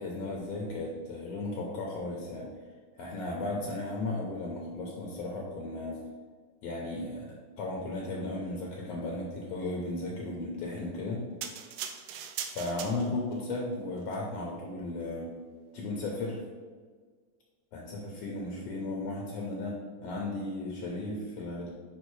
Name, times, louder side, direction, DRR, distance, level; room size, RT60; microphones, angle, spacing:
voice 1, 0.0-2.5 3.0-6.0 6.6-11.3 12.5-15.3 15.7-16.5 17.7-21.7, left 2 dB, 70° left, -1 dB, 1.8 m, -35 dB
sound 1, 11.4-13.4 14.0-14.2, right 8 dB, 85° right, 1.5 m, -39 dB
5.6 x 5.0 x 4.7 m, 1.5 s
omnidirectional pair, 3.5 m